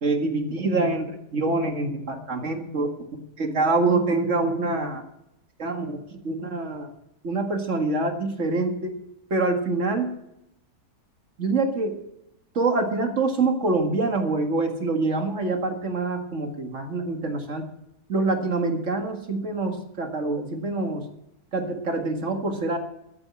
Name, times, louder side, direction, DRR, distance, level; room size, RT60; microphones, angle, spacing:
voice 1, 0.0-1.1 1.3-2.9 3.4-5.0 5.6-6.0 6.2-6.9 7.2-8.9 9.3-10.1 11.4-11.9 12.6-17.6 18.1-21.0 21.5-22.8, right 3 dB, 50° right, 5 dB, 2.1 m, -25 dB
13.0 x 9.0 x 7.2 m, 0.83 s
omnidirectional pair, 1.6 m